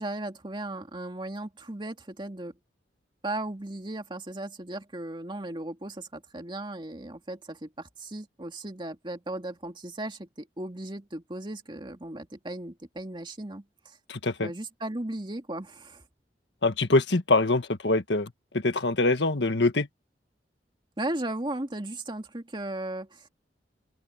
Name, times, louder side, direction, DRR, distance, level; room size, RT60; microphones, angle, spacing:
voice 1, 0.0-2.6 3.2-14.0 14.4-16.0 21.0-23.3, right 1 dB, 30° right, 2.4 m, -36 dB
voice 2, 14.1-14.5 16.6-19.9, left 2 dB, 85° left, 1.6 m, -24 dB
open air
head